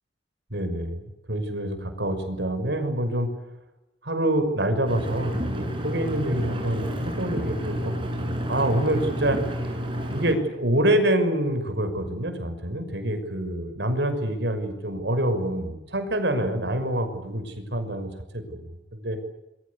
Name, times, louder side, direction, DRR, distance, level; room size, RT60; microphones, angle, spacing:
voice 1, 0.5-1.0 1.3-3.3 4.0-9.8 10.1-19.2, right 1 dB, 70° right, 8 dB, 6.1 m, -26 dB
Engine, 4.9-10.4, equal, 30° right, 7.6 m, -30 dB
28.0 x 23.0 x 8.4 m, 0.95 s
head